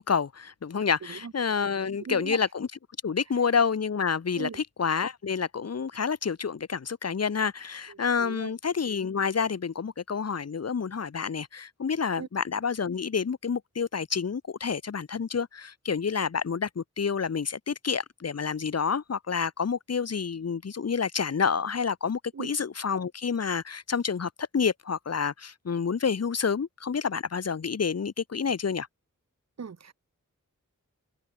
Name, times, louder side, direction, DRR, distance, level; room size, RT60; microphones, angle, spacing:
voice 1, 0.0-2.7 3.0-28.9, left 6 dB, 50° left, 0.8 m, -29 dB
voice 2, 2.0-2.4 4.4-4.6 8.2-8.5 12.2-12.3 22.3-22.5 29.6-29.9, right 6 dB, 55° right, 0.8 m, -37 dB
open air
wide cardioid pair, 60°, 32 cm